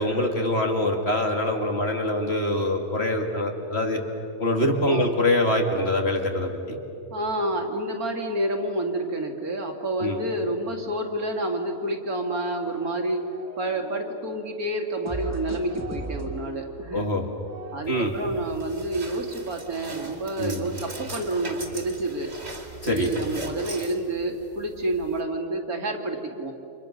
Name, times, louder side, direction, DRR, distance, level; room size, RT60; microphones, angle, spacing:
voice 1, 0.0-4.0 4.4-6.8 10.0-10.2 16.9-17.2 17.9-18.1 20.4-20.6 22.8-23.1, left 1 dB, 40° left, 2 dB, 2.4 m, -24 dB
voice 2, 7.1-13.2 13.6-17.1 17.7-22.3 22.8-26.5, right 1 dB, 65° right, 2 dB, 2.8 m, -29 dB
sound 1, 12.7-14.5 15.1-18.4, right 3 dB, 10° left, 3.0 m, -39 dB
sound 2, 17.8-25.2, right 2 dB, 40° right, 2.7 m, -40 dB
30.0 x 26.5 x 6.5 m, 2.7 s
omnidirectional pair, 1.7 m